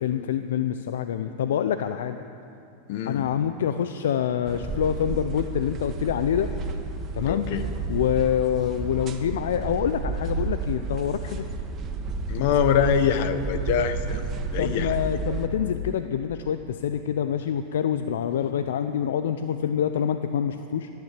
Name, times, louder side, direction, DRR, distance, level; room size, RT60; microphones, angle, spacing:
voice 1, 0.0-2.2 3.1-6.5 7.1-7.5 7.9-11.4 14.6-20.9, left 9 dB, 80° left, 10 dB, 0.5 m, -26 dB
voice 2, 2.9-3.3 7.3-7.7 12.3-14.2 14.5-15.0, left 8 dB, 65° left, 10 dB, 1.0 m, -24 dB
sound 1, 4.5-15.5, right 3 dB, 35° right, 1.4 m, -31 dB
14.0 x 10.5 x 7.5 m, 2.6 s
hypercardioid pair, 110°, 0 cm